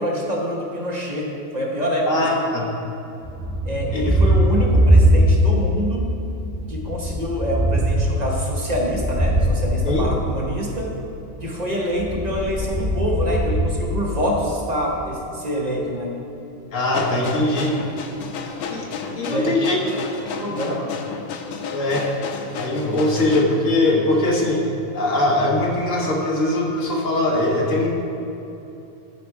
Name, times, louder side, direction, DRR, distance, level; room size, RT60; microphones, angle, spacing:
voice 1, 0.0-2.3 3.6-6.2 6.7-10.9 11.4-16.1 19.1-19.5 20.4-20.9, equal, 30° right, -2 dB, 1.0 m, -26 dB
voice 2, 2.1-2.6 3.9-4.2 9.8-10.1 16.7-17.7 18.7-18.9 19.1-19.8 21.7-22.0 22.6-24.6 24.9-27.9, left 1 dB, 60° left, -2 dB, 1.4 m, -21 dB
Thunder, 3.2-5.7 6.0-10.8 11.9-14.5, equal, 5° right, 0.9 m, -20 dB
sound 1, 16.8-23.4, left 5 dB, 90° left, 1.1 m, -32 dB
11.0 x 4.2 x 4.7 m, 2.8 s
omnidirectional pair, 1.5 m